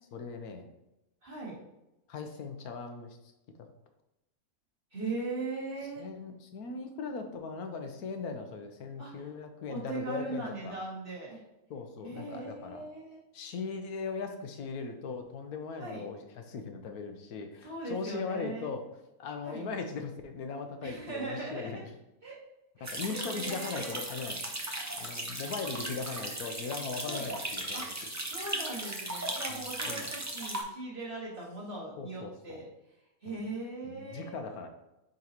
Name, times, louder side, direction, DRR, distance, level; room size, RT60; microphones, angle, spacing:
voice 1, 0.1-0.7 2.1-3.2 6.0-10.8 11.7-12.8 13.3-16.2 16.5-18.9 19.2-21.8 22.8-24.4 24.9-27.8 29.5-30.1 32.0-32.6 33.3-33.4 33.8-34.7, left 4 dB, 85° left, 5 dB, 1.3 m, -39 dB
voice 2, 1.2-1.6 4.9-6.0 9.0-9.3 9.7-11.4 12.0-13.2 15.8-16.1 17.6-18.7 19.4-19.7 20.8-21.8 22.2-22.4 22.8-24.0 27.0-27.3 27.7-32.7 33.2-34.3, right 3 dB, 35° right, -6 dB, 2.3 m, -39 dB
sound 1, 22.8-30.6, right 1 dB, 20° right, 0.5 m, -37 dB
8.5 x 3.9 x 3.0 m, 0.92 s
omnidirectional pair, 1.5 m